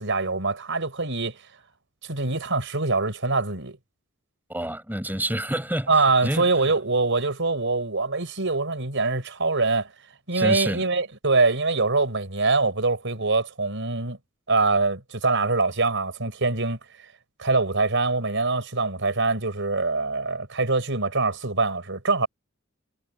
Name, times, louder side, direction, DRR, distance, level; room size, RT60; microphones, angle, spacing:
voice 1, 0.0-1.4 2.1-3.8 5.9-9.9 10.3-14.2 14.5-16.8 17.4-22.3, right 3 dB, 65° right, 6.0 m, -24 dB
voice 2, 4.5-6.7 10.3-10.8, right 1 dB, 10° right, 4.8 m, -29 dB
head